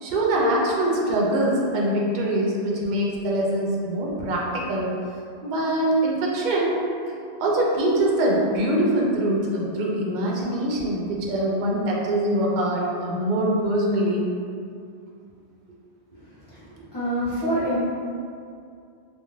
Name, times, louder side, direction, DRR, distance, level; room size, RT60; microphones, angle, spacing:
voice 1, 0.0-4.9 5.4-6.8 7.4-14.4, right 1 dB, 60° right, -3 dB, 0.5 m, -23 dB
voice 2, 16.9-17.8, equal, 25° left, -12 dB, 0.7 m, -25 dB
2.4 x 2.3 x 3.0 m, 2.4 s
omnidirectional pair, 1.1 m